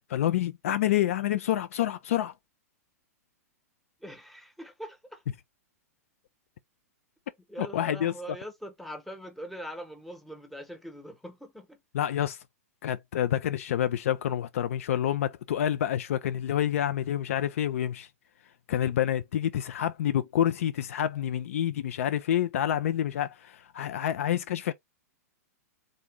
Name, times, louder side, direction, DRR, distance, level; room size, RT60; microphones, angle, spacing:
voice 1, 0.1-2.3 7.6-8.1 11.9-12.4 12.8-18.1 18.7-24.7, left 11 dB, 60° left, 0.4 m, -28 dB
voice 2, 4.0-5.2 7.5-11.8, equal, ahead, 0.9 m, -42 dB
3.7 x 2.6 x 3.5 m
figure-of-eight pair, 105°, 8 cm